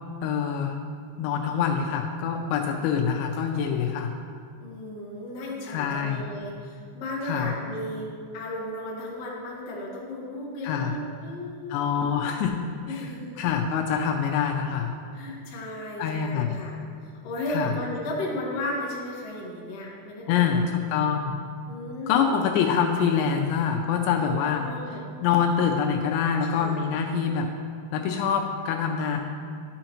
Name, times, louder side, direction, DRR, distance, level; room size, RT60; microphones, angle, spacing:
voice 1, 0.2-0.8 1.2-4.1 5.7-6.3 7.2-7.5 10.6-11.0 11.7-12.5 12.9-13.0 13.4-14.9 16.0-16.5 17.5-17.7 20.3-21.4 22.1-24.7 25.2-27.5 27.9-29.2, left 7 dB, 85° left, 2 dB, 2.8 m, -25 dB
voice 2, 4.6-11.9 12.9-13.4 15.1-16.7 17.0-20.6 21.7-22.3 24.2-25.0 26.4-26.7, left 1 dB, 65° left, -5 dB, 1.5 m, -35 dB
11.5 x 5.6 x 2.9 m, 2.2 s
omnidirectional pair, 5.2 m